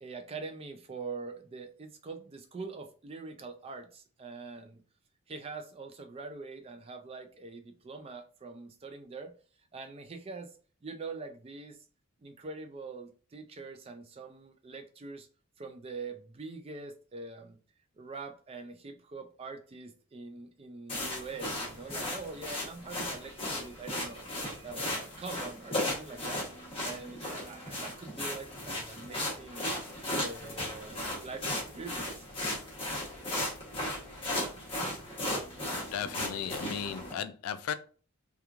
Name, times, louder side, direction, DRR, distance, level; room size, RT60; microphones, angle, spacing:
voice 1, 0.0-4.8 5.3-9.3 9.7-10.5 10.8-11.8 12.2-15.3 15.6-17.6 18.0-24.3 24.6-26.6 26.8-29.6 30.2-32.1, right 4 dB, 25° right, 0.3 m, -44 dB
sound 1, 20.9-37.1, left 1 dB, 25° left, 1.0 m, -36 dB
voice 2, 35.6-37.7, left 8 dB, 90° left, 0.3 m, -36 dB
2.9 x 2.3 x 2.4 m
head